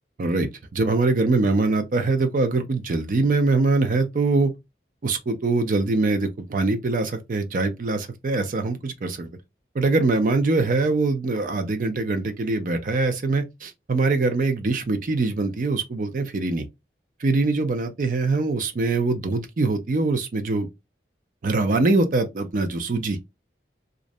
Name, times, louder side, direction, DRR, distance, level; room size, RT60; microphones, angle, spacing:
voice 1, 0.2-4.5 5.0-9.3 9.8-16.6 17.2-20.7 21.4-23.2, right 3 dB, 45° right, 0.4 m, -23 dB
2.5 x 2.1 x 2.5 m
head